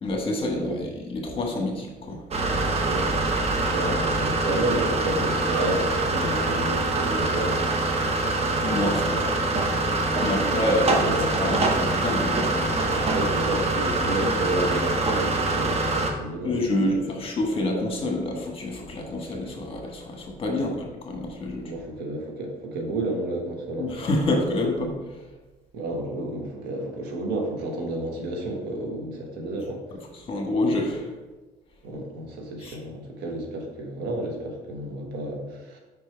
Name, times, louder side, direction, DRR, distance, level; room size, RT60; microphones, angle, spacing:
voice 1, 0.0-2.2 8.6-9.3 10.2-12.9 16.4-21.7 23.8-25.3 30.1-31.1 32.6-32.8, left 1 dB, 35° left, 1 dB, 1.5 m, -28 dB
voice 2, 0.5-0.9 2.9-7.6 8.6-8.8 10.2-11.3 13.0-16.5 20.6-20.7 21.6-24.1 25.7-29.8 31.8-35.8, right 1 dB, 80° right, 1 dB, 1.4 m, -31 dB
sound 1, 2.3-16.1, right 2 dB, 35° right, 1.0 m, -24 dB
5.3 x 4.6 x 4.5 m, 1.2 s
cardioid pair, 110°, 17 cm